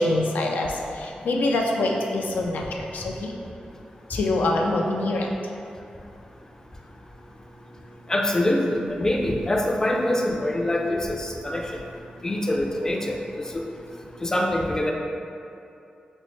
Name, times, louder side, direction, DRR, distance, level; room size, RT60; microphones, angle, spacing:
voice 1, 0.0-3.4 4.1-5.3, left 2 dB, 90° left, 0 dB, 0.3 m, -25 dB
voice 2, 8.1-11.7 12.2-13.2 13.5-13.6 14.2-14.9, left 1 dB, 20° left, 0 dB, 0.4 m, -24 dB
5.1 x 2.0 x 3.1 m, 2.6 s
wide cardioid pair, 85°, 3 cm